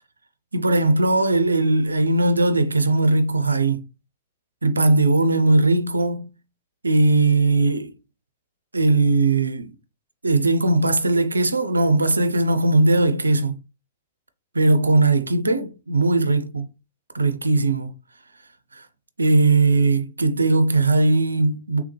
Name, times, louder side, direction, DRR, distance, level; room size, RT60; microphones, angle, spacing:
voice 1, 0.5-3.9 4.6-6.3 6.8-7.9 8.7-9.8 10.2-13.6 14.5-16.6 17.1-17.9 18.7-18.8 19.2-21.8, right 2 dB, 80° right, 0.5 m, -19 dB
3.5 x 3.3 x 3.1 m
figure-of-eight pair, 105°, 0 cm